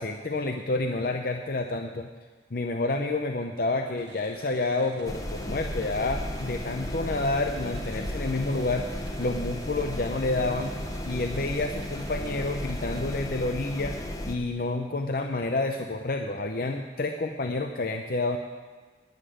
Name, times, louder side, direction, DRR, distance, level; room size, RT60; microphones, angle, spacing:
voice 1, 0.0-2.1 2.5-10.7 11.0-13.9 14.3-18.4, left 2 dB, 50° left, 5 dB, 0.6 m, -29 dB
sound 1, 4.0-13.3, right 2 dB, 70° right, 1.7 m, -49 dB
sound 2, 5.0-14.4, left 1 dB, 20° left, 0.9 m, -34 dB
10.0 x 9.6 x 9.3 m, 1.4 s
head